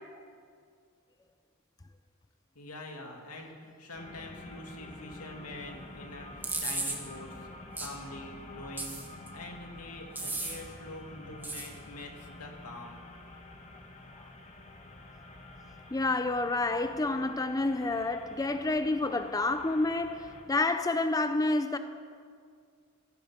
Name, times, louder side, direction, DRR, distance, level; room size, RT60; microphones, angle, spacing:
voice 1, 2.5-7.5 7.8-13.0, left 2 dB, 85° left, 2.5 m, -45 dB
sound 1, 3.9-20.4, left 2 dB, 30° left, 1.6 m, -48 dB
sound 2, 6.4-7.0 7.8-7.9 8.8-9.3 10.2-10.6 11.4-11.7, right 2 dB, 10° right, 1.7 m, -34 dB
voice 2, 15.9-21.8, left 2 dB, 15° left, 0.5 m, -29 dB
15.0 x 14.0 x 5.9 m
head